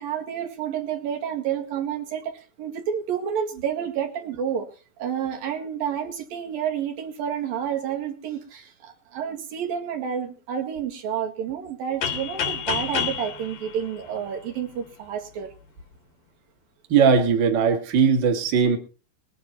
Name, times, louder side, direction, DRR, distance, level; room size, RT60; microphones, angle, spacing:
voice 1, 0.0-4.7 5.0-15.5, right 8 dB, 75° right, 2 dB, 3.7 m, -30 dB
sound 1, 12.0-14.8, left 7 dB, 85° left, 3.8 m, -29 dB
voice 2, 16.9-18.8, right 6 dB, 40° right, 4 dB, 2.2 m, -19 dB
21.0 x 9.4 x 4.2 m, 0.35 s
omnidirectional pair, 4.1 m